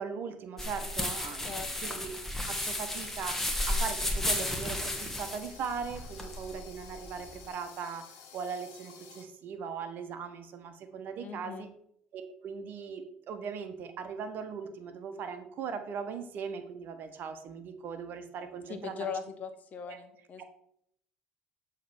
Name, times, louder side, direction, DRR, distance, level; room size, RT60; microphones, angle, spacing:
voice 1, 0.0-2.1 2.5-3.4 3.7-8.0 8.3-11.7 12.1-18.9 19.9-20.0 20.4-20.5, right 6 dB, 55° right, 8 dB, 1.1 m, -39 dB
sound 1, 0.6-7.5, left 1 dB, 10° left, 1.4 m, -33 dB
voice 2, 1.5-2.0 11.2-11.7 18.7-20.4, left 6 dB, 45° left, 8 dB, 1.1 m, -40 dB
sound 2, 2.8-9.2, left 7 dB, 75° left, 1.5 m, -52 dB
7.2 x 3.3 x 6.0 m, 0.72 s
supercardioid pair, 80°, 4 cm